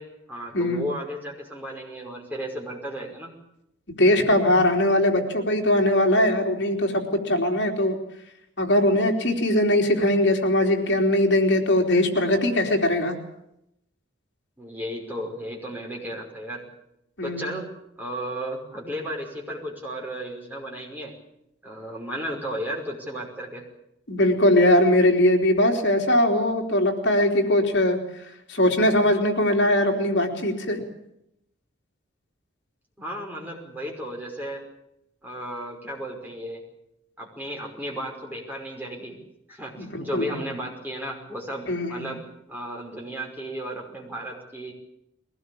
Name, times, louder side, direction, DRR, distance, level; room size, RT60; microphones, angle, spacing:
voice 1, 0.0-3.3 14.6-16.6 17.2-17.7 18.0-21.1 21.6-23.6 33.0-34.6 35.2-36.6 37.2-39.2 39.5-42.2 42.5-44.7, equal, 10° right, -1 dB, 5.4 m, -34 dB
voice 2, 3.9-8.0 8.6-13.1 17.2-17.5 24.1-28.0 28.5-30.8 39.8-40.4 41.7-42.0, left 1 dB, 65° left, 2 dB, 3.6 m, -21 dB
22.0 x 18.5 x 8.7 m, 0.79 s
head